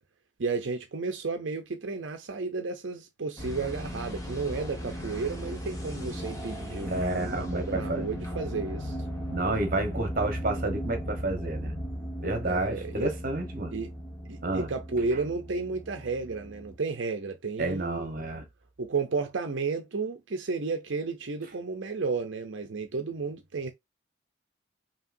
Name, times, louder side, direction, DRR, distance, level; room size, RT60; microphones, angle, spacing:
voice 1, 0.4-9.0 12.4-13.1 13.7-13.9 14.3-18.2 18.8-23.7, right 4 dB, 65° right, 0.6 m, -32 dB
sound 1, 3.4-16.8, equal, 15° left, 1.1 m, -37 dB
voice 2, 6.8-8.1 9.3-11.7 12.2-13.8 14.4-14.7 17.6-18.4, right 2 dB, 45° right, 1.1 m, -30 dB
5.5 x 2.9 x 2.6 m
head